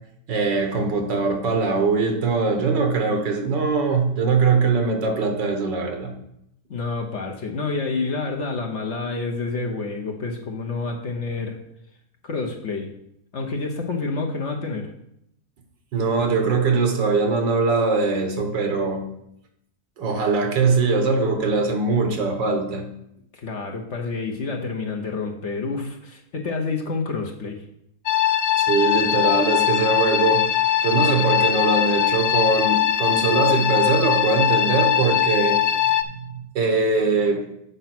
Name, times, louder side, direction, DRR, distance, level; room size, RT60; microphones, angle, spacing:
voice 1, 0.3-6.1 15.9-19.1 20.0-22.9 28.6-30.5 30.8-35.6 35.9-37.4, right 4 dB, 85° right, 4 dB, 2.0 m, -22 dB
voice 2, 6.7-11.6 12.2-12.9 13.3-14.9 23.3-27.6, left 4 dB, 50° left, 2 dB, 1.0 m, -28 dB
sound 1, 28.1-36.0, left 10 dB, 75° left, 0.6 m, -21 dB
8.1 x 5.3 x 5.9 m, 0.76 s
omnidirectional pair, 1.9 m